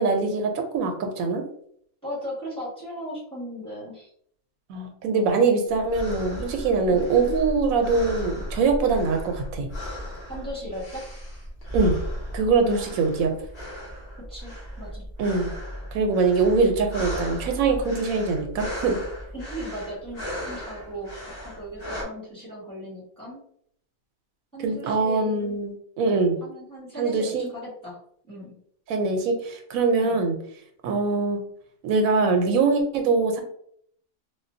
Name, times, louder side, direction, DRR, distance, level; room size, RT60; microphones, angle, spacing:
voice 1, 0.0-1.4 4.7-9.7 11.7-12.0 12.3-13.3 15.2-15.5 15.9-19.0 24.6-26.4 27.0-27.5 28.9-30.3 30.8-31.4 31.8-33.4, right 4 dB, 85° right, 4 dB, 1.0 m, -23 dB
voice 2, 2.0-4.1 6.9-7.0 10.3-11.0 12.7-12.9 14.3-15.0 19.3-23.4 24.5-25.6 26.4-28.0 28.3-28.5 30.0-30.2, equal, 5° left, -8 dB, 1.3 m, -37 dB
sound 1, 5.7-22.0, equal, 45° left, 1.1 m, -35 dB
3.6 x 2.2 x 2.6 m, 0.66 s
omnidirectional pair, 1.4 m